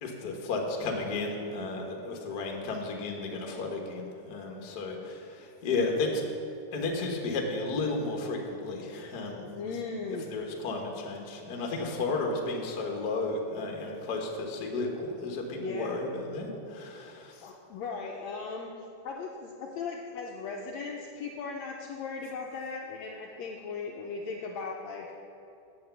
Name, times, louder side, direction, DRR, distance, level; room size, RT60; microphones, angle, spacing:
voice 1, 0.0-6.2 6.7-9.7 10.3-17.5, left 3 dB, 60° left, 0 dB, 1.0 m, -33 dB
voice 2, 9.6-10.2 15.5-16.0 17.4-18.7 19.0-25.1, left 4 dB, 75° left, 0 dB, 1.6 m, -37 dB
8.5 x 7.8 x 6.9 m, 2.7 s
omnidirectional pair, 3.8 m